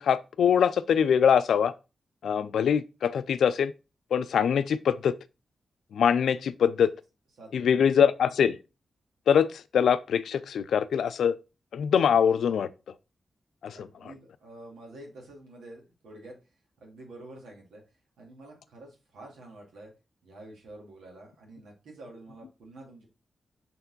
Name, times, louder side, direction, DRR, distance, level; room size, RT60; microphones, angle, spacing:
voice 1, 0.0-1.7 2.2-3.7 4.1-5.1 5.9-6.9 7.5-8.6 9.3-11.3 11.7-12.7 13.6-13.9, left 7 dB, 80° left, 0.4 m, -23 dB
voice 2, 7.4-7.8 13.7-16.4 16.8-17.8 18.2-19.9 20.2-23.1, right 2 dB, 90° right, 2.2 m, -48 dB
5.4 x 4.4 x 4.0 m
supercardioid pair, 45°, 0 cm